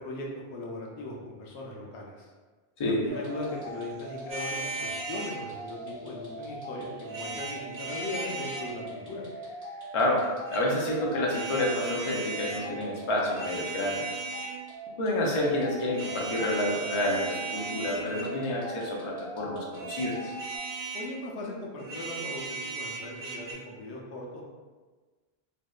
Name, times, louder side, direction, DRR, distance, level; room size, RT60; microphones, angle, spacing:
voice 1, 0.0-2.3 2.9-9.2 20.9-24.4, left 2 dB, 85° left, -2 dB, 0.8 m, -39 dB
sound 1, 3.1-20.6, right 1 dB, 10° right, 0.9 m, -41 dB
sound 2, 4.3-5.4 7.1-8.7 10.2-10.6 11.3-12.6 13.2-14.6 15.9-18.4 19.7-21.1 21.8-23.5, right 3 dB, 55° right, 0.6 m, -37 dB
voice 2, 9.9-14.0 15.0-20.2, left 1 dB, 50° left, -3 dB, 0.3 m, -29 dB
2.7 x 2.1 x 2.3 m, 1.4 s
omnidirectional pair, 1.1 m